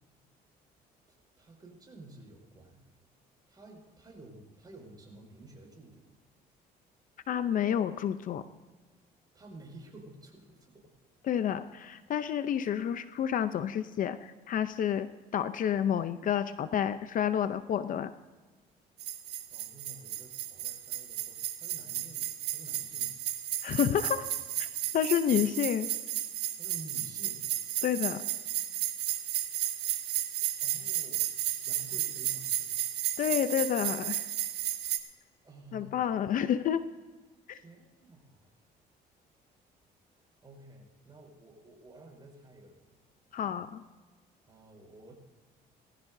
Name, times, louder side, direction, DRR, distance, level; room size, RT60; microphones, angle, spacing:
voice 1, 1.4-2.8 3.5-6.1 9.3-10.9 19.5-23.2 26.6-27.4 30.6-31.3 31.6-32.7 35.4-36.0 37.5-38.5 40.4-43.0 44.5-45.1, right 2 dB, 25° right, 0 dB, 5.6 m, -51 dB
voice 2, 7.3-8.5 11.2-18.1 23.6-24.7 24.9-25.9 27.8-28.2 33.2-34.3 35.7-36.9 37.5-37.6 43.3-43.8, left 9 dB, 50° left, 12 dB, 0.6 m, -30 dB
sound 1, 19.0-35.0, right 12 dB, 75° right, 1.3 m, -33 dB
20.0 x 15.0 x 2.7 m, 1.3 s
cardioid pair, 110°, 17 cm